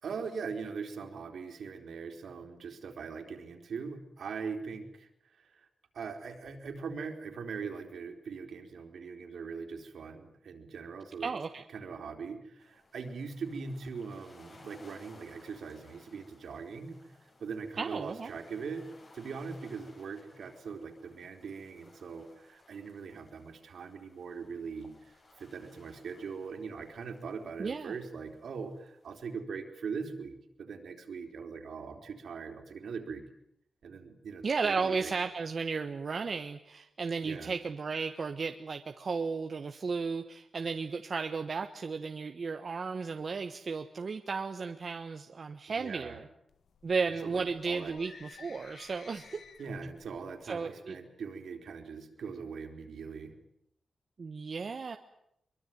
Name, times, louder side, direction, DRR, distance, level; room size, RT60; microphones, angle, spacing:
voice 1, 0.0-5.7 5.9-11.3 11.7-18.8 19.1-33.2 33.8-35.1 37.2-37.5 45.8-46.2 47.2-48.0 49.6-53.3, right 5 dB, 75° right, 5 dB, 4.0 m, -41 dB
voice 2, 11.2-11.6 17.8-18.3 27.6-27.9 34.4-46.3 46.8-49.4 50.4-50.9 54.2-55.0, right 4 dB, 50° right, 6 dB, 1.3 m, -34 dB
sound 1, 12.6-29.3, left 2 dB, 45° left, 6.6 m, -60 dB
sound 2, 46.5-50.4, left 6 dB, 75° left, 1.9 m, -55 dB
23.5 x 23.0 x 9.4 m, 0.76 s
wide cardioid pair, 105°, 0 cm